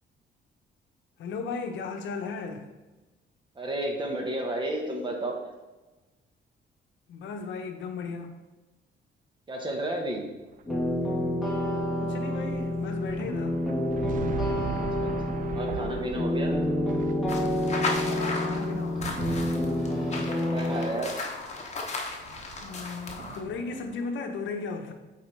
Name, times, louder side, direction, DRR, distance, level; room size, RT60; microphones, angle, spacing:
voice 1, 1.2-2.6 7.1-8.4 12.0-13.6 17.9-19.2 22.6-24.9, left 4 dB, 80° left, 5 dB, 0.8 m, -36 dB
voice 2, 3.6-5.4 9.5-10.3 15.0-16.6 20.3-21.3, right 1 dB, 25° right, 1 dB, 1.2 m, -32 dB
sound 1, 10.5-24.1, right 7 dB, 45° right, 0.4 m, -40 dB
sound 2, 10.7-20.9, left 1 dB, ahead, 1.5 m, -28 dB
sound 3, 17.3-23.4, left 3 dB, 35° left, 1.0 m, -35 dB
8.2 x 4.3 x 3.2 m, 1.2 s
cardioid pair, 135°, 19 cm